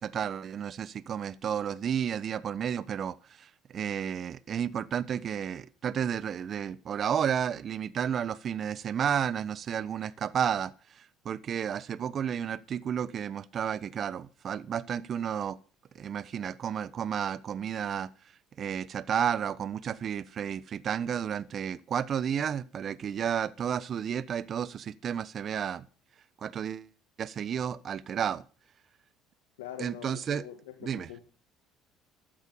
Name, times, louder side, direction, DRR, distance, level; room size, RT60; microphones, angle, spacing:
voice 1, 0.0-15.6 15.9-18.1 18.6-25.9 26.4-26.9 27.2-28.4 29.8-30.4 30.8-31.1, right 8 dB, 50° right, 1.2 m, -32 dB
voice 2, 29.6-31.2, left 11 dB, 90° left, 1.8 m, -43 dB
15.0 x 12.0 x 5.7 m
supercardioid pair, 75°, 0 cm